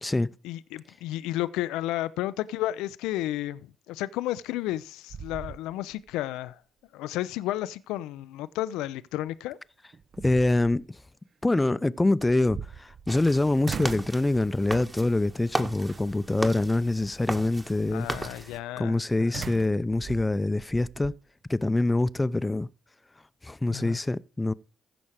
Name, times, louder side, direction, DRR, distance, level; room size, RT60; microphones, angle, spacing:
voice 1, 0.4-6.6 6.9-9.6 17.9-19.4 23.7-24.0, left 15 dB, 75° left, 0.4 m, -32 dB
sound 1, 4.5-4.8 5.1-6.1 6.5-6.6 9.3-9.4 9.9-10.8 12.2-13.3 13.6-14.2 14.7-15.1 15.9-16.3 19.3-21.2, right 6 dB, 50° right, 0.8 m, -39 dB
voice 2, 10.2-10.8 11.4-18.1 18.8-21.1 21.5-22.7 23.4-24.5, left 2 dB, 20° left, 0.7 m, -25 dB
sound 2, 13.1-18.6, right 2 dB, 20° right, 1.8 m, -36 dB
15.0 x 6.3 x 4.8 m
hypercardioid pair, 50°, 0 cm